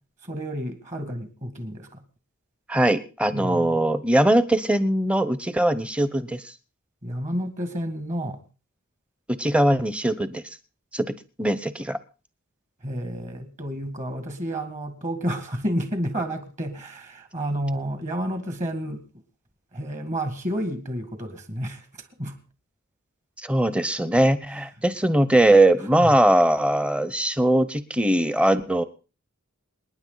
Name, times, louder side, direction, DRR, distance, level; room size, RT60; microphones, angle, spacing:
voice 1, 0.2-2.0 3.3-3.8 7.0-8.4 12.8-19.0 19.7-21.9 22.2-22.4 26.0-26.1, equal, 35° right, 8 dB, 2.1 m, -30 dB
voice 2, 2.7-6.4 9.3-10.4 10.9-11.1 11.4-12.0 23.4-28.8, right 1 dB, 5° right, 13 dB, 0.9 m, -21 dB
27.5 x 10.0 x 4.0 m, 0.35 s
head